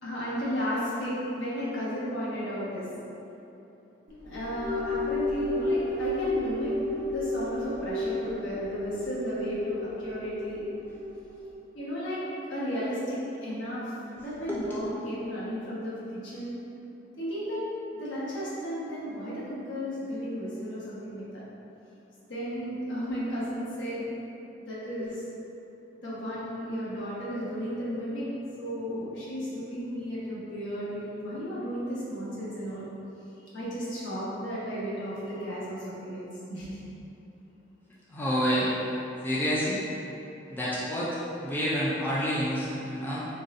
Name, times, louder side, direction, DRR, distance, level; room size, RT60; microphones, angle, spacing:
voice 1, 0.0-2.8 4.2-6.7 7.1-10.6 11.7-16.5 17.2-17.6 17.9-21.4 22.3-24.1 24.6-25.2 26.0-28.3 28.6-32.9 33.5-36.8, equal, 75° left, -9 dB, 1.2 m, -34 dB
sound 1, 4.1-11.6, left 2 dB, 80° right, 0.9 m, -32 dB
voice 2, 14.5-14.8 25.0-25.1 38.1-39.0 39.2-39.8 40.5-43.3, equal, 10° left, -8 dB, 0.4 m, -29 dB
3.9 x 3.8 x 2.6 m, 2.9 s
head